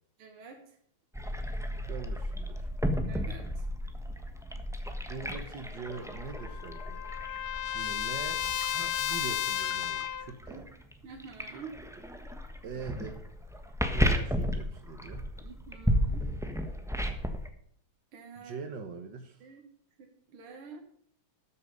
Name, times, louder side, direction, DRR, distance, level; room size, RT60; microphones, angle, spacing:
voice 1, 0.2-0.6 3.1-3.6 10.5-10.7 11.0-11.8 15.4-16.3 18.1-18.6 19.4-19.6 20.0-20.8, right 5 dB, 85° right, 3 dB, 2.3 m, -47 dB
sound 1, 1.1-17.5, equal, ahead, 0.8 m, -34 dB
voice 2, 1.9-2.7 5.1-7.0 7.7-8.4 8.7-10.6 12.6-13.2 13.9-15.3 18.4-19.5, right 5 dB, 60° right, 6 dB, 1.7 m, -42 dB
Trumpet, 5.9-10.3, left 11 dB, 65° left, 1.0 m, -33 dB
13.0 x 7.1 x 5.3 m, 0.65 s
omnidirectional pair, 2.3 m